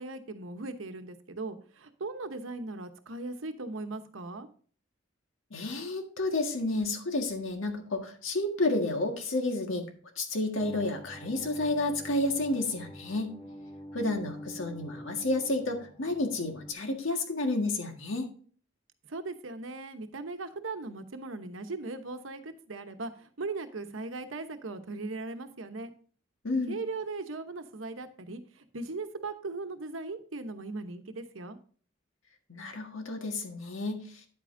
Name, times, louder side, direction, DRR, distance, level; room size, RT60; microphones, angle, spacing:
voice 1, 0.0-4.5 14.0-14.2 19.1-25.9 26.7-31.6, right 3 dB, 90° right, 8 dB, 1.0 m, -38 dB
voice 2, 5.5-9.9 10.2-13.3 13.9-18.3 26.4-26.8 32.5-34.2, left 2 dB, 85° left, 4 dB, 1.7 m, -31 dB
sound 1, 10.6-16.7, equal, 30° left, 1.4 m, -46 dB
9.8 x 8.5 x 2.6 m, 0.43 s
head